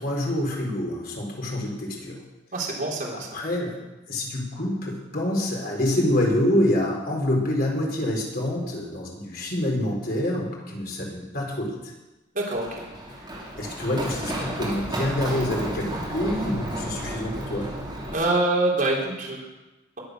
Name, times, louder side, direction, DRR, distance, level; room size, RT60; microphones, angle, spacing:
voice 1, 0.0-2.2 3.3-3.8 4.1-11.9 13.6-17.7, left 1 dB, 55° left, -1 dB, 4.2 m, -26 dB
voice 2, 2.5-3.4 12.3-12.7 18.1-19.4, right 2 dB, 50° right, -3 dB, 4.2 m, -25 dB
Run, 12.5-18.1, right 1 dB, 25° right, 3.5 m, -32 dB
21.5 x 8.2 x 6.5 m, 1.0 s
head